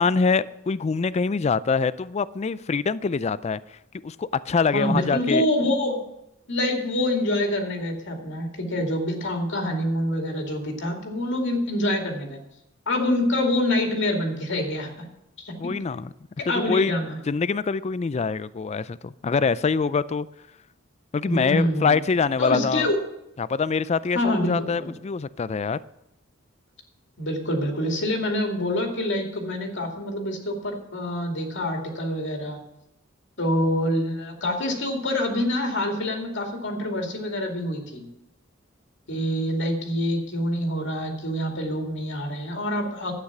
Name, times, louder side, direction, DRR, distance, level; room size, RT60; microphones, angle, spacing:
voice 1, 0.0-3.6 4.0-5.5 15.6-16.1 16.7-17.0 17.3-20.3 21.1-22.9 23.4-25.8, left 5 dB, 35° left, 17 dB, 0.4 m, -24 dB
voice 2, 4.7-6.0 6.5-12.4 12.9-15.1 15.4-15.7 16.5-17.2 21.2-22.0 22.4-23.0 24.1-24.9 27.2-32.6 33.4-38.1 39.1-43.1, left 1 dB, 65° left, 2 dB, 2.5 m, -26 dB
11.5 x 9.1 x 6.0 m, 0.84 s
head